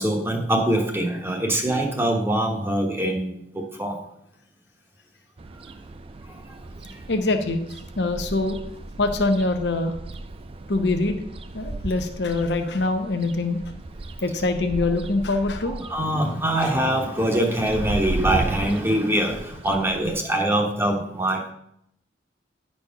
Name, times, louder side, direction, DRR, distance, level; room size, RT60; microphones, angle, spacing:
voice 1, 0.0-4.0 5.6-5.7 6.3-6.6 6.8-7.0 15.7-21.5, right 1 dB, 15° right, 1 dB, 1.0 m, -24 dB
sound 1, 5.4-20.2, right 2 dB, 30° right, 0.4 m, -35 dB
voice 2, 7.1-7.6 8.0-8.6 9.0-9.9 10.7-11.2 11.5-13.6 14.2-15.8, left 2 dB, 65° left, 6 dB, 0.9 m, -24 dB
10.0 x 4.3 x 5.7 m, 0.74 s
head